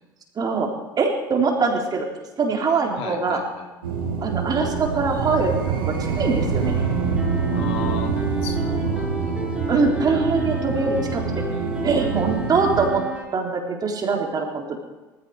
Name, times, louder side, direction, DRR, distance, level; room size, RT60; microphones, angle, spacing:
voice 1, 0.4-0.7 1.0-2.1 2.4-3.4 4.2-6.7 9.7-11.2 11.8-13.0 13.3-14.8, right 4 dB, 35° right, 1 dB, 3.8 m, -23 dB
voice 2, 3.0-3.7 7.5-9.4, left 6 dB, 60° left, 3 dB, 2.4 m, -34 dB
sound 1, 3.8-12.9, right 5 dB, 80° right, 2.2 m, -26 dB
sound 2, 6.6-13.2, right 1 dB, 10° right, 6.2 m, -31 dB
18.5 x 15.0 x 4.9 m, 1.2 s
hypercardioid pair, 70°, 11 cm